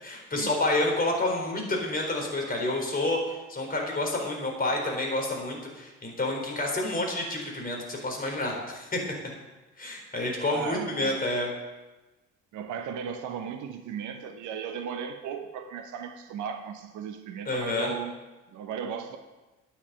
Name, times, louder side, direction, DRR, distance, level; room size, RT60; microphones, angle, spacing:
voice 1, 0.0-8.9 9.8-11.5 17.4-17.9, left 2 dB, 25° left, 4.0 m, -29 dB
voice 2, 10.5-11.3 12.5-18.1 18.5-19.2, right 7 dB, 55° right, 0.9 m, -36 dB
10.0 x 6.9 x 8.6 m
figure-of-eight pair, 50°, 36 cm